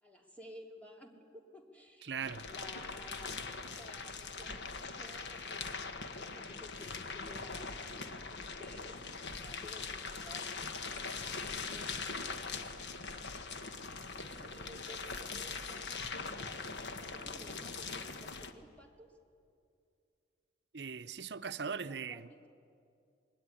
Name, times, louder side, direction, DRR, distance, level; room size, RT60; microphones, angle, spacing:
voice 1, 0.0-3.4 3.6-5.9 6.2-7.9 8.3-9.0 9.3-10.9 11.4-12.1 14.3-19.2 21.3-22.5, equal, 10° left, 3.0 m, -55 dB
voice 2, 2.1-2.5 20.7-22.5, right 6 dB, 75° right, 0.7 m, -40 dB
sound 1, 2.2-18.5, left 4 dB, 75° left, 1.4 m, -42 dB
25.5 x 21.0 x 9.8 m
head